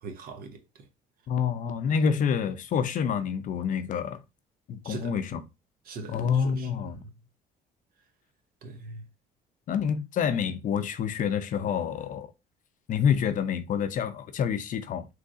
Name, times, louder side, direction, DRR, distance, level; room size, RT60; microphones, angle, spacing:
voice 1, 0.0-0.6 4.8-5.2 5.9-7.0 8.6-9.1, right 3 dB, 60° right, 0.8 m, -41 dB
voice 2, 1.3-4.2 4.7-5.4 6.1-7.0 9.7-12.3 12.9-15.1, left 7 dB, 50° left, 0.5 m, -27 dB
3.6 x 3.1 x 2.4 m
cardioid pair, 110°, 17 cm